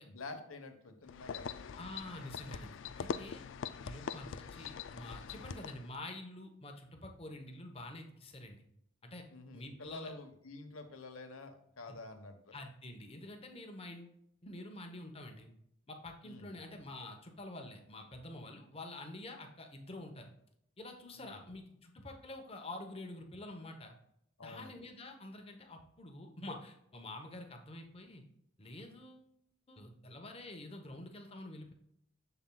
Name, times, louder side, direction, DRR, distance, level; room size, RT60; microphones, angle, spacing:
voice 1, 0.1-1.5 9.3-12.5 16.2-16.6 21.1-21.4 24.4-24.7, left 3 dB, 80° left, 6 dB, 1.1 m, -48 dB
sound 1, 1.1-6.0, left 6 dB, 60° left, 0.3 m, -43 dB
voice 2, 1.7-3.4 3.8-8.6 9.0-9.3 9.5-10.1 11.8-12.0 12.5-15.5 15.9-20.3 20.8-23.9 24.4-28.2 28.6-29.2 29.7-31.7, left 1 dB, 25° left, 4 dB, 0.9 m, -47 dB
7.2 x 7.0 x 2.3 m, 0.73 s
head